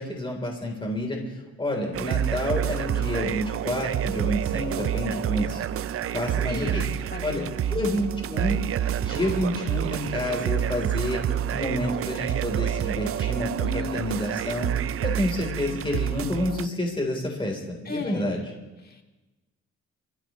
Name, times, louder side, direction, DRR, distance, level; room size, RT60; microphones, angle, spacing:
voice 1, 0.0-5.6 6.1-6.8 7.2-7.4 7.7-8.6 9.0-11.2 11.5-14.7 15.0-18.4, left 1 dB, 15° left, 1 dB, 3.6 m, -29 dB
sound 1, 1.9-16.7, right 10 dB, 50° right, 0.5 m, -28 dB
voice 2, 6.5-6.8 7.1-7.8 13.5-14.0 17.8-18.3 18.8-19.0, left 3 dB, 30° left, 3 dB, 2.4 m, -36 dB
29.0 x 15.0 x 3.1 m, 1.1 s
cardioid pair, 90°, 30 cm